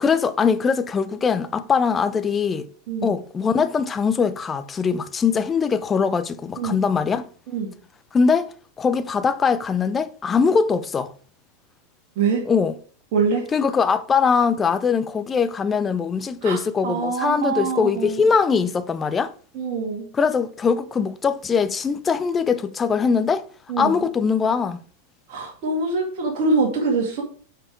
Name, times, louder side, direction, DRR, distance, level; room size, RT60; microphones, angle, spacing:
voice 1, 0.0-2.7 3.0-7.2 8.1-8.5 8.8-11.1 12.5-12.8 13.5-19.3 20.1-23.4 23.8-24.8, left 5 dB, 20° left, 0.6 m, -21 dB
voice 2, 13.1-13.4 16.4-18.2 19.5-20.1 23.7-24.0 25.3-27.2, right 4 dB, 45° right, 2.3 m, -24 dB
8.6 x 4.7 x 4.8 m
figure-of-eight pair, 90°, 0 cm